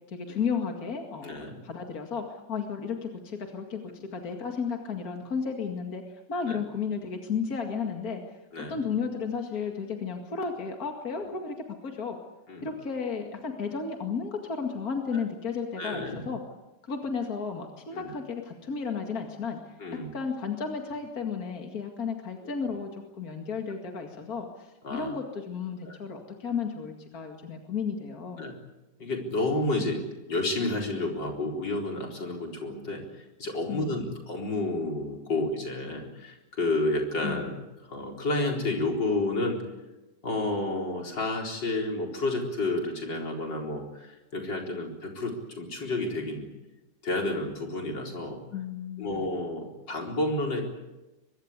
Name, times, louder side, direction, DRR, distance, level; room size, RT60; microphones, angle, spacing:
voice 1, 0.1-3.8 4.1-6.0 6.3-8.2 8.7-11.6 11.8-12.2 12.6-16.4 16.9-19.6 20.1-28.5 33.7-34.1 37.2-37.6 48.5-49.3, left 5 dB, 55° left, 3 dB, 2.6 m, -33 dB
voice 2, 1.2-1.6 6.4-6.6 8.5-8.8 12.5-12.7 15.1-15.2 15.8-16.2 17.9-18.1 19.8-20.1 24.8-25.2 25.9-26.0 28.4-28.5 29.0-30.0 30.3-37.6 37.8-39.6 40.2-46.5 47.0-48.4 49.0-50.6, left 2 dB, 85° left, 1 dB, 4.9 m, -30 dB
23.5 x 23.0 x 8.3 m, 1.0 s
omnidirectional pair, 1.9 m